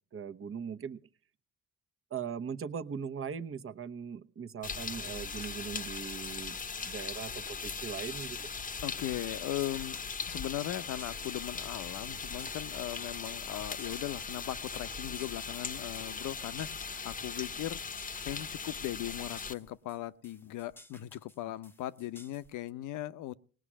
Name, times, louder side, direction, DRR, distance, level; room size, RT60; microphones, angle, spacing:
voice 1, 0.1-1.0 2.1-8.4, right 7 dB, 45° right, 1.0 m, -40 dB
sound 1, 4.6-19.5, left 5 dB, 25° left, 0.8 m, -39 dB
sound 2, 4.6-22.7, left 1 dB, 5° left, 1.0 m, -58 dB
voice 2, 8.8-10.0 10.2-17.8 18.2-23.3, left 14 dB, 85° left, 0.7 m, -38 dB
19.0 x 6.3 x 9.9 m
cardioid pair, 90°, 30 cm